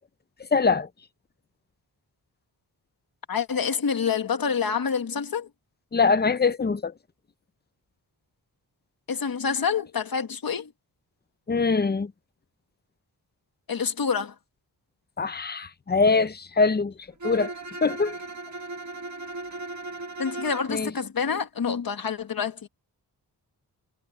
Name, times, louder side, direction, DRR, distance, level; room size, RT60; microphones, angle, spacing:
voice 1, 0.5-0.9 5.9-6.9 11.5-12.1 15.2-16.9 17.2-17.5 17.8-18.2 20.7-20.9, left 4 dB, 25° left, 0.6 m, -23 dB
voice 2, 3.3-5.5 9.1-10.7 13.7-14.3 20.2-22.7, left 6 dB, 55° left, 1.6 m, -27 dB
Bowed string instrument, 17.2-20.8, right 2 dB, 45° right, 1.8 m, -37 dB
wide cardioid pair, 155°, 41 cm